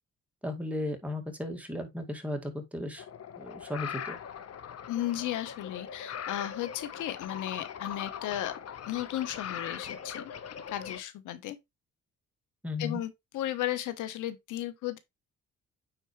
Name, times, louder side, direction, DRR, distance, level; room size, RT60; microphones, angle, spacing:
voice 1, 0.4-3.0 3.4-4.2 12.6-13.0, left 2 dB, 5° right, 2.1 m, -35 dB
sound 1, 3.0-11.0, left 8 dB, 55° left, 1.1 m, -41 dB
voice 2, 4.9-8.5 8.9-10.2 10.7-11.6 12.8-15.0, left 13 dB, 80° left, 1.1 m, -34 dB
9.2 x 4.5 x 3.2 m
cardioid pair, 90°, 30 cm